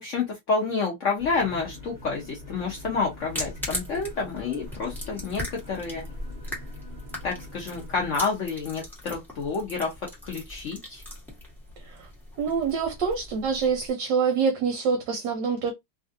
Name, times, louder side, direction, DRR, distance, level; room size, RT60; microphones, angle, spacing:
voice 1, 0.0-6.1 7.2-9.9 10.2-11.0, left 4 dB, 75° left, 0.7 m, -29 dB
sound 1, 1.2-8.2, left 2 dB, 40° right, 0.9 m, -44 dB
sound 2, 3.2-13.9, left 1 dB, ahead, 0.7 m, -39 dB
voice 2, 12.4-15.7, right 5 dB, 65° right, 1.2 m, -26 dB
3.3 x 2.5 x 2.5 m
omnidirectional pair, 2.3 m